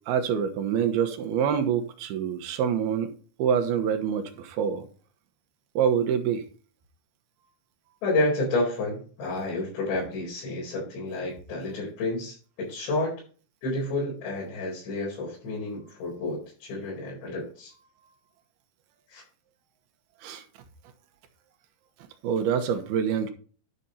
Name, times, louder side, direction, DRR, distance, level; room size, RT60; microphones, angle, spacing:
voice 1, 0.1-3.1 3.4-4.9 5.8-6.4 20.2-20.4 22.2-23.3, right 8 dB, 70° right, 2.8 m, -26 dB
voice 2, 8.0-13.1 13.6-17.7 19.1-19.2, left 2 dB, 75° left, 6.8 m, -30 dB
11.5 x 6.2 x 4.1 m
omnidirectional pair, 5.0 m